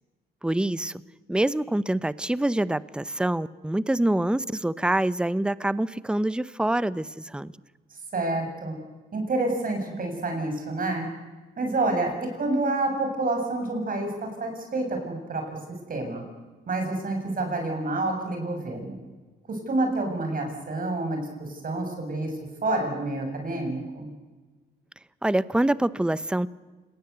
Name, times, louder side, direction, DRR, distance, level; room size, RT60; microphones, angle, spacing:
voice 1, 0.4-1.0 1.3-7.5 25.2-26.5, right 1 dB, 5° right, 17 dB, 0.8 m, -25 dB
voice 2, 8.1-8.7 9.1-11.1 11.6-15.6 15.9-16.2 16.7-19.0 19.5-22.4 22.6-24.1, right 2 dB, 45° right, 4 dB, 7.2 m, -28 dB
28.0 x 19.5 x 8.2 m, 1.3 s
cardioid pair, 90°, 20 cm